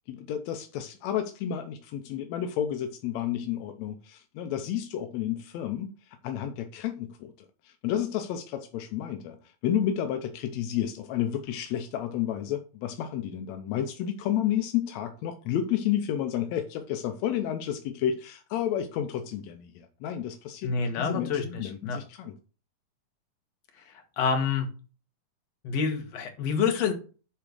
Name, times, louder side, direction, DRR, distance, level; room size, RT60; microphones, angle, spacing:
voice 1, 0.1-7.3 7.6-22.4, left 10 dB, 75° left, 1.7 m, -31 dB
voice 2, 20.6-22.0 24.2-24.7 25.6-26.9, left 5 dB, 55° left, 2.5 m, -27 dB
10.0 x 3.7 x 6.4 m
omnidirectional pair, 3.8 m